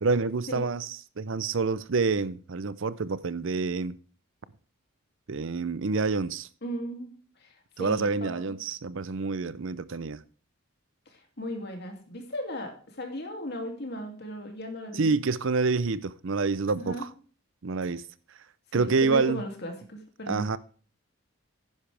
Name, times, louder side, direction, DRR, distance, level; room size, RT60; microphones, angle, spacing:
voice 1, 0.0-4.0 5.3-6.5 7.8-10.2 14.9-17.1 17.6-18.0 18.7-19.4 20.3-20.6, right 4 dB, 65° right, 0.6 m, -27 dB
voice 2, 6.6-8.5 11.1-15.1 16.7-17.1 18.7-20.4, left 1 dB, 50° left, 2.6 m, -37 dB
11.0 x 10.0 x 3.4 m
head